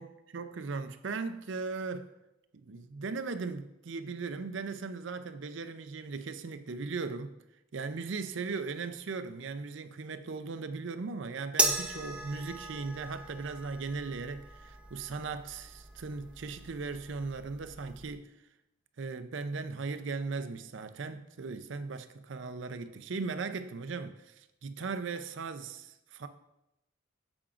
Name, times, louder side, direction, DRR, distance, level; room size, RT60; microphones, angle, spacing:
voice 1, 0.0-2.1 2.5-7.3 7.7-18.3 19.0-26.3, right 4 dB, 70° right, 0.5 m, -38 dB
sound 1, 11.6-18.2, right 2 dB, 5° right, 0.6 m, -37 dB
8.6 x 7.0 x 2.5 m
head